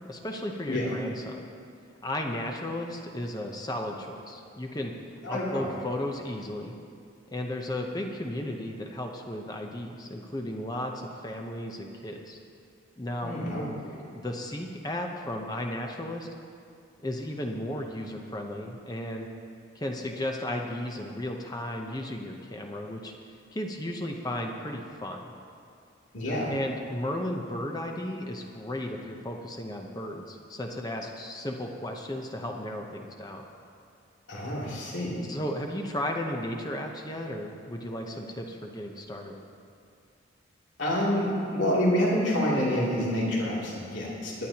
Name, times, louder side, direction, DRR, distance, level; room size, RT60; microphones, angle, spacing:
voice 1, 0.1-1.5 2.0-4.9 5.3-6.7 7.3-12.4 13.0-13.3 14.1-16.3 17.0-19.3 19.7-23.1 23.5-25.3 26.5-33.4 35.3-39.4, left 1 dB, 20° left, 2 dB, 0.8 m, -34 dB
voice 2, 5.2-5.7 13.2-13.9 26.1-26.5 34.3-35.2 40.8-44.5, equal, 70° left, -5 dB, 2.8 m, -28 dB
22.0 x 10.0 x 2.9 m, 2.4 s
head